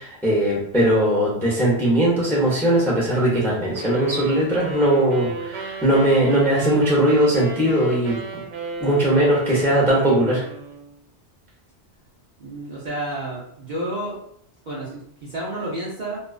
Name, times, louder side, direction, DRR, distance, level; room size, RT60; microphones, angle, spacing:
voice 1, 0.0-8.4 8.8-10.5, right 1 dB, 5° left, -5 dB, 0.4 m, -19 dB
sound 1, 3.8-10.9, right 4 dB, 90° right, 1.0 m, -35 dB
voice 2, 12.4-14.2 14.7-16.2, right 1 dB, 50° right, -5 dB, 0.6 m, -30 dB
2.3 x 2.3 x 2.3 m, 0.70 s
omnidirectional pair, 1.2 m